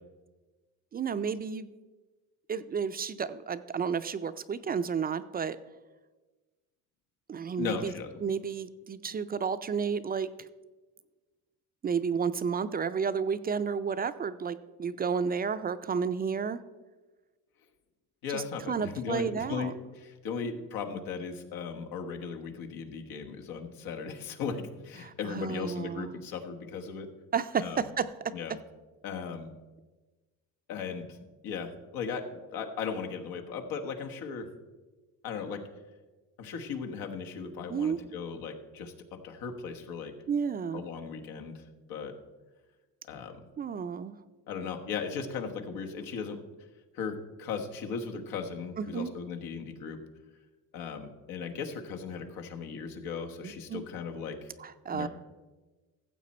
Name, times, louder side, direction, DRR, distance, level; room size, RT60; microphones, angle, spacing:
voice 1, 0.9-1.7 2.5-5.6 7.3-7.9 8.2-10.3 11.8-16.6 18.3-19.7 25.0-26.1 27.3-28.1 37.7-38.0 40.3-40.8 43.6-44.2 48.8-49.1 53.4-53.8 54.6-55.1, right 6 dB, 25° right, 12 dB, 0.4 m, -31 dB
voice 2, 7.6-8.3 18.2-27.1 27.6-27.9 28.3-28.5 29.0-29.5 30.7-31.2 31.4-32.2 32.5-34.5 35.2-35.6 36.4-38.9 39.2-40.1 40.7-41.6 41.9-42.1 43.0-43.4 44.5-46.4 46.9-50.0 50.7-54.5 54.9-55.1, left 6 dB, 90° left, 4 dB, 1.3 m, -37 dB
14.5 x 7.5 x 4.2 m, 1.2 s
cardioid pair, 120°, 35 cm